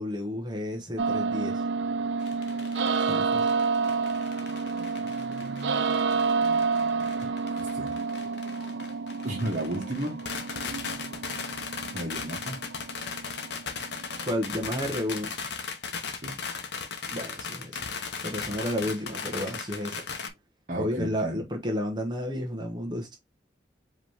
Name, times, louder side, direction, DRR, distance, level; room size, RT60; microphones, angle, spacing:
voice 1, 0.0-1.6 3.1-3.5 14.2-15.3 17.1-17.8 18.2-20.0 20.7-23.2, equal, 25° right, 1.0 m, -31 dB
sound 1, 1.0-14.9, right 4 dB, 70° right, 0.6 m, -29 dB
sound 2, 2.2-20.3, left 5 dB, 65° left, 0.8 m, -37 dB
voice 2, 7.6-7.9 9.2-10.2 11.9-12.6 16.1-16.4 20.7-21.4, right 1 dB, 45° right, 1.6 m, -33 dB
4.9 x 3.0 x 3.4 m
head